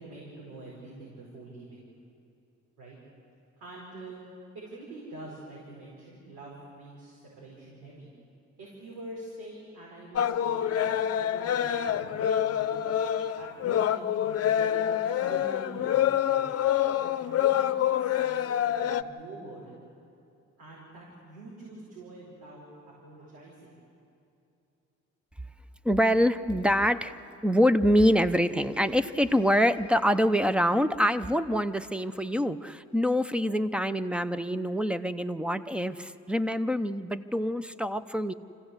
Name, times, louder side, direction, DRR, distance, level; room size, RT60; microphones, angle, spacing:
voice 1, 0.0-1.9 2.8-3.0 3.6-4.2 4.5-8.1 8.6-12.8 13.2-16.5 17.0-19.8 20.1-20.2 20.6-23.8, right 2 dB, 90° right, -5 dB, 5.0 m, -46 dB
sound 1, 10.2-19.0, left 10 dB, 55° left, 0.8 m, -26 dB
voice 2, 25.8-38.3, equal, 5° right, 12 dB, 0.7 m, -25 dB
25.5 x 15.5 x 8.1 m, 2.6 s
cardioid pair, 90°, 30 cm